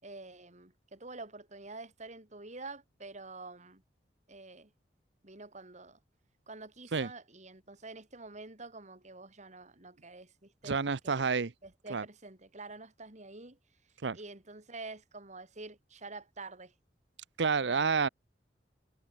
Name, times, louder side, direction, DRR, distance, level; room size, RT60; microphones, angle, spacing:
voice 1, 0.0-3.8 4.3-4.7 5.2-6.0 6.5-10.8 11.0-11.3 11.6-13.6 14.1-16.7, right 3 dB, 40° right, 4.0 m, -47 dB
voice 2, 10.6-11.5 11.9-12.0 14.0-14.2 17.4-18.1, right 5 dB, 80° right, 0.8 m, -29 dB
head